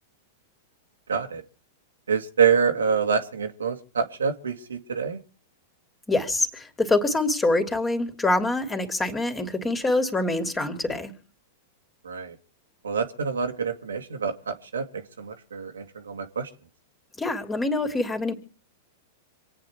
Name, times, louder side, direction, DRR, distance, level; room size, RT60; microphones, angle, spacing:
voice 1, 1.1-1.4 2.1-5.2 12.0-12.4 12.8-16.5, right 6 dB, 85° right, 5 dB, 1.8 m, -26 dB
voice 2, 6.1-11.1 17.2-18.3, left 2 dB, 15° left, 6 dB, 2.9 m, -25 dB
26.5 x 9.1 x 4.5 m, 0.37 s
hypercardioid pair, 105°, 0 cm